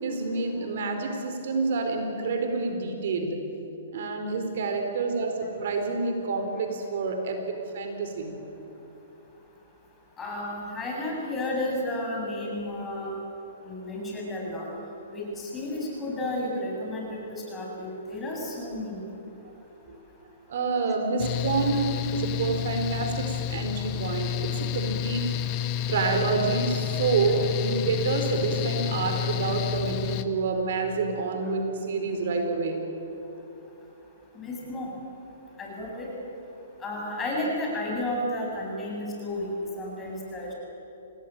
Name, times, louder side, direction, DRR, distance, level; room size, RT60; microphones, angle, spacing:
voice 1, 0.0-3.4 3.9-7.4 7.7-8.3 19.9-20.0 20.5-25.3 25.9-32.8, right 4 dB, 65° right, 5 dB, 4.4 m, -28 dB
voice 2, 10.2-13.1 13.6-14.7 15.1-19.0 34.3-34.9 35.6-36.1 36.8-39.5 39.8-40.5, left 1 dB, 15° left, -2 dB, 7.4 m, -32 dB
Mechanical fan, 21.2-30.2, left 10 dB, 35° left, 1.3 m, -30 dB
27.5 x 18.5 x 9.1 m, 3.0 s
hypercardioid pair, 140°, 0 cm